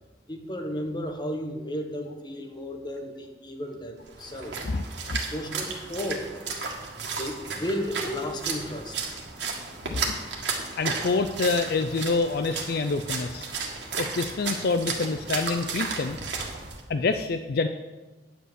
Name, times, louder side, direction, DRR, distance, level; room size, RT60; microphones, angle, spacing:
voice 1, 0.3-4.6 5.3-6.3 6.9-9.0, equal, 25° left, 3 dB, 1.3 m, -33 dB
Splash splatter, 4.1-16.8, right 4 dB, 85° right, 1.7 m, -34 dB
voice 2, 9.8-10.2 10.8-13.5 14.0-16.2 16.9-17.7, left 3 dB, 60° left, 8 dB, 0.4 m, -27 dB
10.0 x 5.1 x 7.9 m, 1.2 s
head